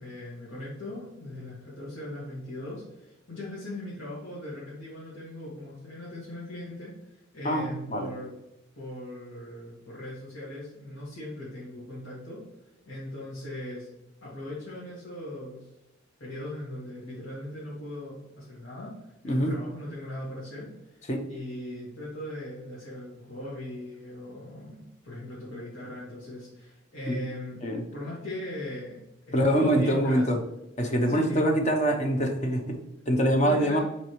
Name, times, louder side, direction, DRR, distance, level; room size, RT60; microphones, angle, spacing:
voice 1, 0.0-8.3 8.8-12.4 12.9-13.9 14.2-15.7 16.2-27.6 27.9-29.0 29.3-30.2 31.1-31.5 33.4-33.8, left 1 dB, 85° left, -8 dB, 2.1 m, -39 dB
voice 2, 7.4-8.1 19.2-19.5 21.1-21.2 27.1-27.2 27.6-27.8 29.3-30.4 30.8-33.8, equal, 35° left, 3 dB, 0.8 m, -25 dB
8.0 x 4.1 x 3.1 m, 0.90 s
head